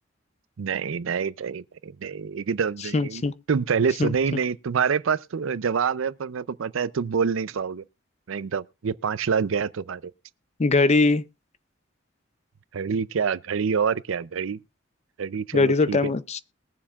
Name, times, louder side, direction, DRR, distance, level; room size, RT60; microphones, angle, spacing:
voice 1, 0.6-3.2 3.5-7.8 8.3-10.0 12.7-14.6 15.2-16.1, right 6 dB, 70° right, 0.5 m, -26 dB
voice 2, 2.9-3.3 4.0-4.1 10.6-11.3 15.5-16.4, left 3 dB, 35° left, 0.5 m, -21 dB
21.5 x 7.1 x 2.4 m
head